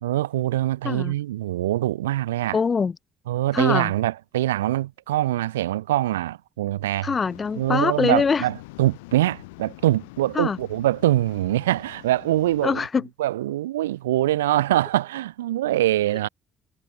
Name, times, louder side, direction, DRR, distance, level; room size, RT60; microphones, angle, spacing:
voice 1, 0.0-2.6 3.3-7.1 7.6-12.8 13.2-16.3, right 14 dB, 85° right, 3.7 m, -23 dB
voice 2, 2.5-2.9 3.5-3.9 7.0-8.4 10.3-10.6 12.6-13.1, left 5 dB, 40° left, 3.4 m, -23 dB
Waves surf, 7.2-12.9, left 23 dB, 80° left, 3.7 m, -45 dB
hypercardioid pair, 50°, 0 cm